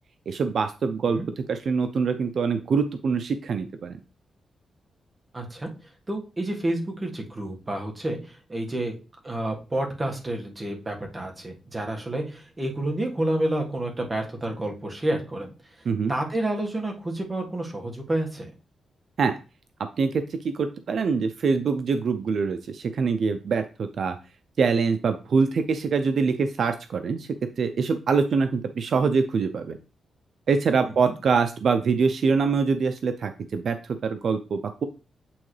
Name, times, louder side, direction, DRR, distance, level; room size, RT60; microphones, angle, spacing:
voice 1, 0.3-4.0 15.9-16.1 19.2-19.4 20.0-24.2 24.6-27.3 27.6-29.8 30.5-34.8, right 5 dB, 65° right, 8 dB, 0.5 m, -24 dB
voice 2, 5.3-5.7 6.1-8.9 9.2-15.5 16.1-18.5 31.0-31.1, right 1 dB, 20° right, 2 dB, 1.6 m, -29 dB
8.6 x 3.7 x 3.2 m, 0.32 s
cardioid pair, 100°, 0 cm